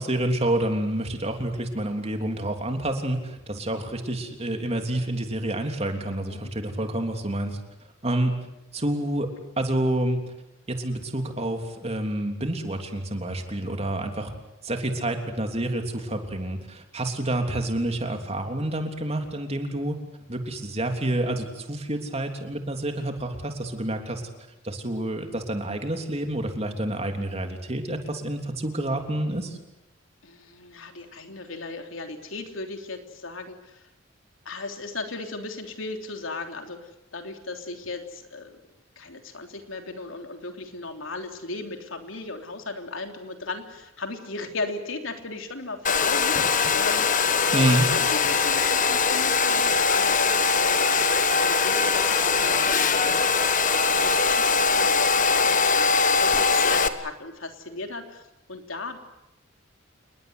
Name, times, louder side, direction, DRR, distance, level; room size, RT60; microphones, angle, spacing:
voice 1, 0.0-7.6 8.0-8.3 8.7-9.3 9.6-10.2 10.7-14.3 14.6-20.0 20.3-24.2 24.6-29.6 47.5-47.9, right 1 dB, 30° right, 4 dB, 3.3 m, -28 dB
voice 2, 30.2-33.8 34.4-38.6 38.9-53.5 53.8-59.0, left 3 dB, 90° left, 5 dB, 3.4 m, -36 dB
Domestic sounds home sounds, 45.8-56.9, left 5 dB, 40° left, 1.3 m, -21 dB
28.5 x 21.0 x 8.0 m, 0.88 s
head